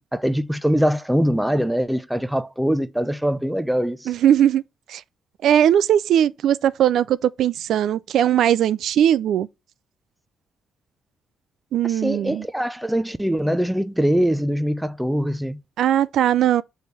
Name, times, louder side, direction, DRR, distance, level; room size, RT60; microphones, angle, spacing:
voice 1, 0.0-4.1 11.9-15.6, equal, 5° right, 0.5 m, -22 dB
voice 2, 4.1-4.6 4.9-5.0 5.4-9.5 11.7-12.4 15.8-16.6, right 10 dB, 75° right, 0.3 m, -19 dB
6.3 x 3.4 x 5.6 m
cardioid pair, 90°, 0 cm